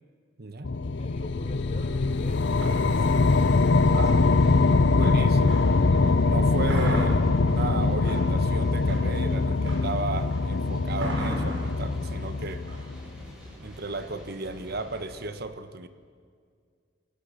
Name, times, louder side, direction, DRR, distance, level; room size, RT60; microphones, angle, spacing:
voice 1, 0.4-0.7 3.9-4.6 4.9-12.6 13.6-15.9, right 3 dB, 55° right, 10 dB, 1.2 m, -35 dB
sound 1, 0.6-13.2, left 3 dB, 70° left, 0.7 m, -23 dB
voice 2, 0.9-3.3 3.7-4.4, left 1 dB, 35° left, 6 dB, 2.2 m, -46 dB
sound 2, 1.1-15.3, equal, 5° right, 7.4 m, -46 dB
sound 3, 1.8-5.9 6.3-14.2, right 1 dB, 85° right, 6.4 m, -38 dB
28.5 x 17.5 x 6.9 m, 2.1 s
head